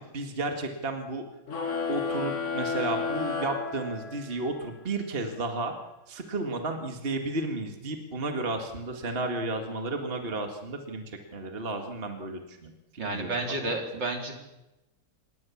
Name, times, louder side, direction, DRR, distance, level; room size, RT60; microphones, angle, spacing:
voice 1, 0.1-1.3 1.9-5.7 6.1-13.3, right 2 dB, 30° right, 4 dB, 2.1 m, -33 dB
sound 1, 1.5-4.5, left 5 dB, 40° left, 1.9 m, -31 dB
voice 2, 13.0-14.4, right 2 dB, 55° right, 3 dB, 4.1 m, -31 dB
27.0 x 21.0 x 7.3 m, 0.98 s
omnidirectional pair, 2.3 m